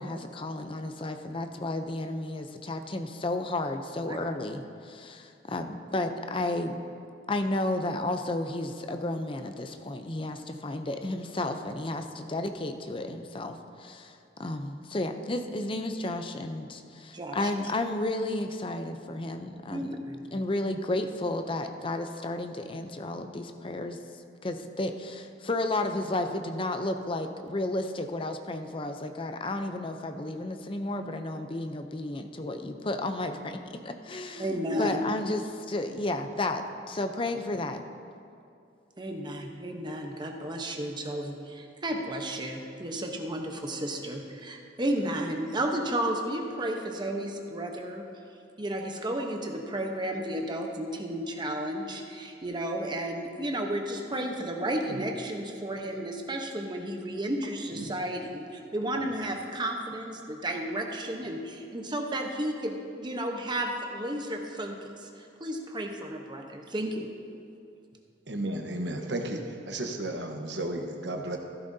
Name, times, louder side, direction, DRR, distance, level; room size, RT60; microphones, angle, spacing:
voice 1, 0.0-6.8 7.3-19.9 20.3-24.0 24.4-37.8, left 2 dB, 30° left, 7 dB, 0.6 m, -32 dB
voice 2, 17.1-17.5 19.7-20.2 34.4-35.0 39.0-48.0 48.6-67.1, right 1 dB, 25° right, 2 dB, 0.9 m, -33 dB
voice 3, 68.3-69.4 69.7-71.4, right 1 dB, 70° right, 3 dB, 1.1 m, -33 dB
14.5 x 12.0 x 2.7 m, 2.6 s
head